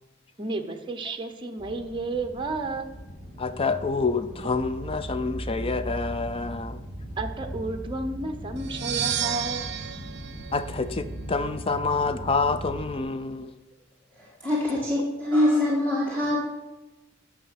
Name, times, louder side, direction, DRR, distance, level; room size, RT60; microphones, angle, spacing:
voice 1, 0.4-3.0 7.2-9.7, right 2 dB, 25° right, 6 dB, 0.8 m, -32 dB
sound 1, 1.6-13.0, equal, 10° right, 3.8 m, -38 dB
voice 2, 3.4-6.8 10.5-13.5, left 4 dB, 30° left, 11 dB, 0.5 m, -27 dB
sound 2, 8.6-11.4, right 10 dB, 60° right, 0.5 m, -32 dB
voice 3, 14.1-16.4, left 1 dB, 10° left, -6 dB, 1.8 m, -24 dB
9.8 x 6.3 x 5.8 m, 1.1 s
head